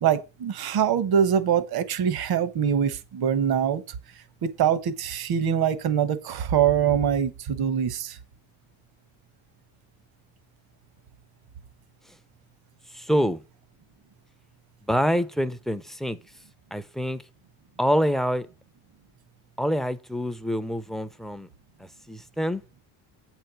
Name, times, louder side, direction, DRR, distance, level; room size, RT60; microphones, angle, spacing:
voice 1, 0.0-3.8 4.4-8.2, right 8 dB, 55° right, 1.2 m, -24 dB
voice 2, 12.9-13.4 14.9-16.2 16.7-17.2 17.8-18.5 19.6-21.5 21.8-22.6, equal, ahead, 0.5 m, -26 dB
8.5 x 4.6 x 6.8 m
cardioid pair, 130°, 46 cm